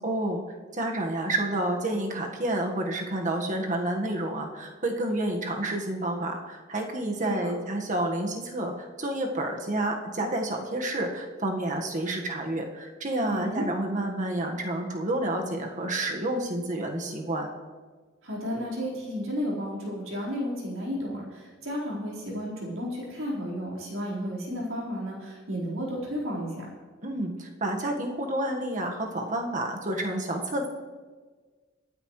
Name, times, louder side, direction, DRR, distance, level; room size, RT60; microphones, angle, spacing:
voice 1, 0.0-0.4 0.7-17.5 27.0-30.7, right 1 dB, 40° right, 2 dB, 1.6 m, -29 dB
voice 2, 7.2-7.5 13.3-13.7 18.2-26.6, equal, 80° right, -5 dB, 4.5 m, -33 dB
24.0 x 9.5 x 3.2 m, 1.4 s
head